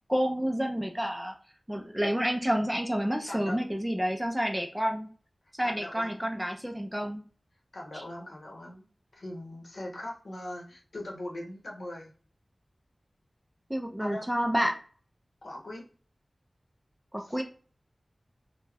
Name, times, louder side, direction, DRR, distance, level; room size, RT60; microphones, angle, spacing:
voice 1, 0.1-1.4 1.7-5.1 5.5-7.2 7.9-8.0 13.7-14.8 17.1-17.4, equal, 5° right, 2 dB, 0.4 m, -29 dB
voice 2, 3.3-3.6 5.6-6.3 7.7-8.9 9.1-12.1 14.0-14.3 15.4-15.8 17.2-17.4, left 1 dB, 80° left, -1 dB, 0.8 m, -40 dB
2.3 x 2.0 x 3.3 m, 0.41 s
wide cardioid pair, 75°, 0 cm